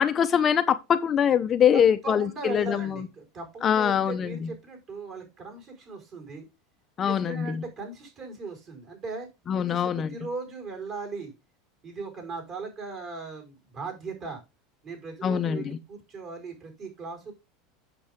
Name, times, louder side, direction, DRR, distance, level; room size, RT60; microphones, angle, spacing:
voice 1, 0.0-3.0 3.6-4.3 7.0-7.3 9.5-10.1 15.2-15.6, left 8 dB, 30° left, 0.7 m, -23 dB
voice 2, 1.7-6.4 7.0-9.3 9.5-11.3 11.8-14.4 14.8-17.3, right 4 dB, 35° right, 4.8 m, -38 dB
8.6 x 6.9 x 3.6 m
supercardioid pair, 135°, 0 cm